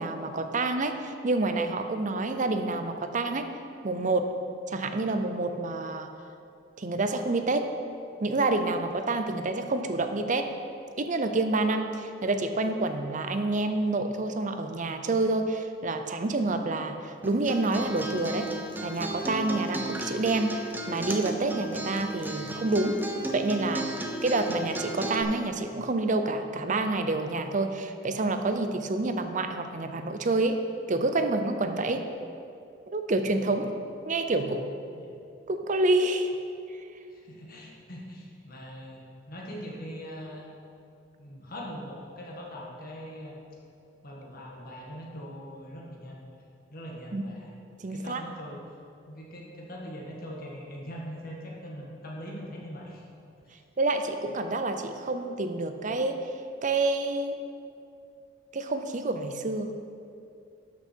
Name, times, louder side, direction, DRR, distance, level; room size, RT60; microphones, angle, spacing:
voice 1, 0.0-3.5 3.8-4.3 4.7-6.1 6.8-7.7 8.2-10.5 11.0-18.5 18.8-23.0 23.3-23.9 24.2-30.6 30.9-32.0 32.9-33.7 34.1-34.7 35.5-36.3 47.1-47.2 47.8-48.2 53.8-56.2 56.6-57.4 58.5-59.7, right 2 dB, 40° right, 7 dB, 0.6 m, -28 dB
Acoustic guitar, 17.2-25.2, right 2 dB, 10° right, 0.7 m, -35 dB
voice 2, 37.1-40.5 41.2-43.4 44.0-46.2 46.7-47.5 47.9-48.6 49.1-53.0, equal, 50° left, -2 dB, 1.8 m, -41 dB
12.0 x 6.2 x 4.6 m, 2.5 s
head